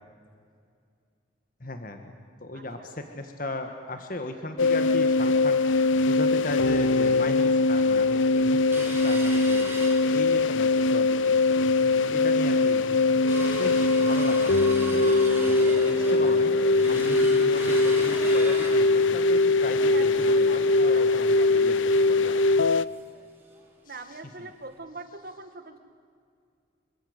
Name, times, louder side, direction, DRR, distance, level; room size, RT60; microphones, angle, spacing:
voice 1, 1.6-2.1 2.4-9.7 10.0-19.9 20.3-21.7 22.0-22.3 23.8-24.0, left 2 dB, 45° left, 5 dB, 1.7 m, -37 dB
voice 2, 2.5-2.9 19.9-22.5 23.9-25.8, right 3 dB, 50° right, 7 dB, 2.0 m, -43 dB
sound 1, 4.6-22.9, left 3 dB, 85° left, 0.7 m, -22 dB
sound 2, 8.7-10.6 11.0-11.1 11.4-11.8 12.3-12.4 12.7-23.2 23.6-23.7 24.0-24.2 24.7-24.8, right 3 dB, 10° right, 4.1 m, -40 dB
Singing, 11.6-14.0 14.7-15.8 16.7-18.1 20.0-20.3, left 1 dB, 70° right, 3.8 m, -42 dB
26.0 x 24.5 x 8.2 m, 2.3 s
head